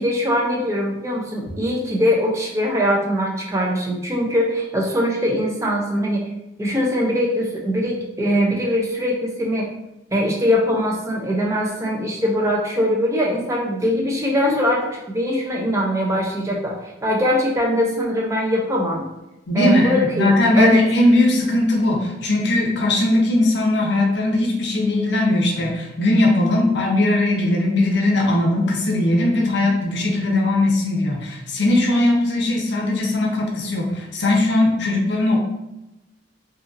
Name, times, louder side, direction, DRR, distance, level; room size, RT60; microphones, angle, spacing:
voice 1, 0.0-6.3 6.6-9.7 10.1-19.1 19.5-20.8, equal, 15° right, -1 dB, 0.4 m, -22 dB
voice 2, 19.5-35.4, left 2 dB, 70° left, 0 dB, 0.6 m, -19 dB
2.7 x 2.6 x 2.4 m, 0.92 s
head